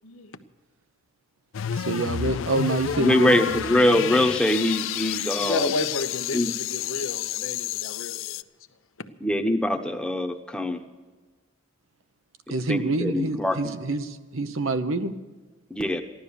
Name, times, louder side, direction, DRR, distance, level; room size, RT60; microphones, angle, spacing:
voice 1, 0.0-0.4 5.4-8.4 9.0-9.1, left 2 dB, 90° left, 1.0 m, -31 dB
sound 1, 1.5-8.4, left 10 dB, 75° left, 0.4 m, -30 dB
voice 2, 1.7-4.3 12.5-15.1, right 2 dB, 90° right, 1.0 m, -27 dB
voice 3, 3.0-5.7 6.3-6.5 9.2-10.8 12.7-13.6 15.7-16.0, left 1 dB, 5° left, 1.0 m, -23 dB
15.0 x 12.0 x 6.9 m
head